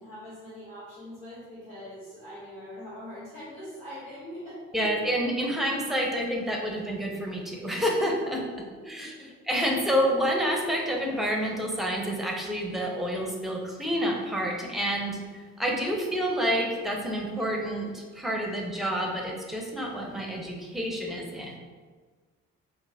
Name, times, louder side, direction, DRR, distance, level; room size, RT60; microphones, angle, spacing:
voice 1, 0.0-4.8 8.6-8.7 9.0-9.3, equal, 85° left, -13 dB, 1.1 m, -43 dB
voice 2, 4.7-8.4 8.9-9.1 9.5-21.6, equal, ahead, 0 dB, 0.6 m, -28 dB
3.9 x 2.5 x 2.7 m, 1.5 s
figure-of-eight pair, 45°, 38 cm